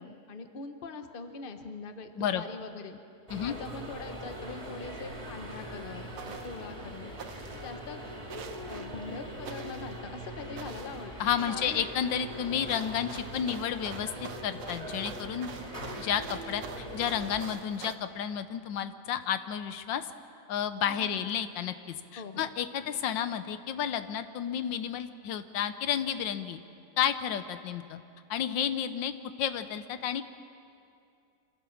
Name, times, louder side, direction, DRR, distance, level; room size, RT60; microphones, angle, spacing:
voice 1, 0.0-3.0 3.4-7.1 7.6-8.0 8.7-11.1 11.4-11.9 20.9-21.3 22.2-22.5, left 4 dB, 35° left, 7 dB, 1.1 m, -42 dB
sound 1, 3.3-17.4, right 1 dB, 20° right, 3.0 m, -41 dB
sound 2, 5.5-5.6 6.2-6.6 7.2-7.7 8.3-8.9 9.4-10.0 10.6-11.0 12.7-18.0, right 6 dB, 65° right, 1.6 m, -46 dB
voice 2, 11.2-15.5 16.0-20.0 20.5-26.6 27.0-28.0 28.3-29.1 29.4-30.2, left 9 dB, 90° left, 11 dB, 1.5 m, -31 dB
26.0 x 16.0 x 7.1 m, 2.5 s
omnidirectional pair, 1.9 m